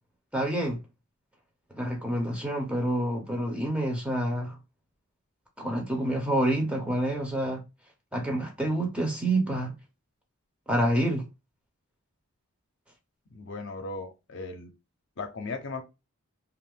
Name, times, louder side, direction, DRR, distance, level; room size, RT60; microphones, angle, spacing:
voice 1, 0.3-0.8 1.7-4.6 5.6-7.6 8.1-9.7 10.7-11.2, right 1 dB, 5° right, 0.6 m, -27 dB
voice 2, 13.3-14.7 15.2-15.8, left 3 dB, 55° left, 0.6 m, -37 dB
2.6 x 2.4 x 3.5 m
head